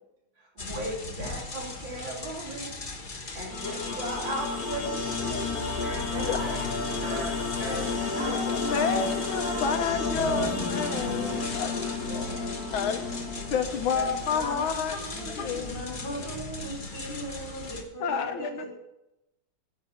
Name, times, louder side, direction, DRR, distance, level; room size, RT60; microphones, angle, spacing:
sound 1, 0.6-17.8, left 3 dB, 30° left, 1.1 m, -37 dB
voice 1, 0.6-2.7 3.3-5.5 6.1-7.3 8.0-10.6 12.0-12.5 13.9-15.7, right 1 dB, 70° right, -2 dB, 3.8 m, -37 dB
sound 2, 3.5-14.6, left 4 dB, 50° left, 2.0 m, -32 dB
sound 3, 5.8-6.0 6.4-6.7 7.0-7.3 7.6-8.4 8.7-9.1, right 1 dB, 40° right, 4.6 m, -35 dB
voice 2, 8.3-12.0 12.7-13.0 13.5-15.0 15.3-15.7 16.2-16.3 18.0-18.6, left 7 dB, 85° left, 7 dB, 1.7 m, -30 dB
voice 3, 15.0-18.7, right 1 dB, 70° left, -2 dB, 5.0 m, -38 dB
10.5 x 8.6 x 5.8 m, 0.90 s
omnidirectional pair, 2.2 m